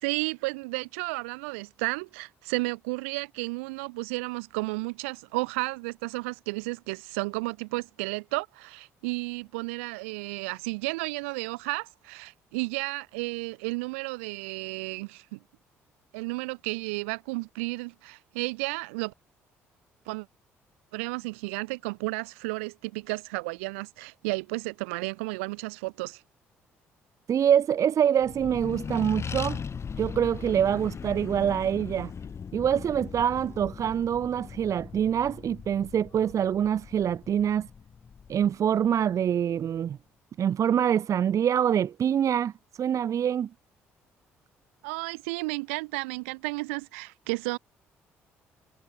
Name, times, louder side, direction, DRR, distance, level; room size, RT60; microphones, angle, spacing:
voice 1, 0.0-15.4 16.1-19.1 20.1-20.3 20.9-26.2 44.8-47.6, right 27 dB, 75° right, 4.6 m, -33 dB
voice 2, 27.3-29.6 30.0-32.1 32.5-37.7 38.3-40.0 40.4-42.5 42.8-43.5, right 9 dB, 50° right, 1.4 m, -25 dB
Accelerating revving vroom, 28.2-39.1, left 6 dB, 40° left, 7.0 m, -39 dB
figure-of-eight pair, 50°, 7 cm